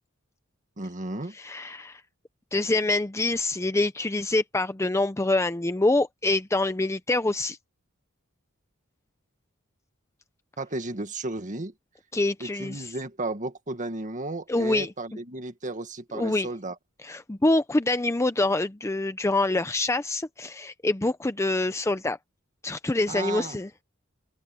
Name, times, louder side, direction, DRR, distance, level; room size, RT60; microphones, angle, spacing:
voice 1, 0.8-1.3 10.6-11.7 12.4-16.8 23.1-23.6, right 2 dB, 40° right, 1.9 m, -34 dB
voice 2, 1.3-2.0 2.5-7.6 12.1-12.9 14.5-14.9 16.1-16.5 17.0-22.2 22.6-23.8, left 2 dB, 15° left, 0.6 m, -25 dB
open air
head